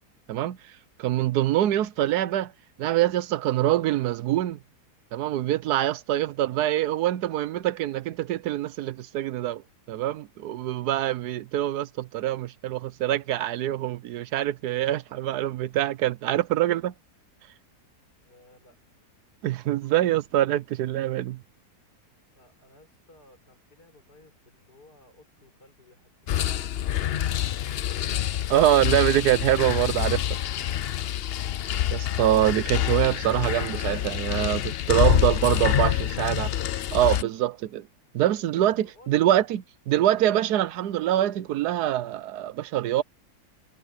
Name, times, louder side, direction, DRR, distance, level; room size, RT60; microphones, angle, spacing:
voice 1, 1.0-2.5 2.8-4.6 5.1-9.6 9.9-16.9 19.4-21.4 28.5-30.4 31.9-35.9 36.2-36.5 36.9-37.9 38.1-43.0, right 13 dB, 75° right, 1.2 m, -24 dB
voice 2, 18.2-18.8 22.3-28.1 38.2-39.3, left 2 dB, 70° left, 7.8 m, -56 dB
sound 1, 26.3-37.2, left 11 dB, 85° left, 0.5 m, -26 dB
omnidirectional pair, 1.8 m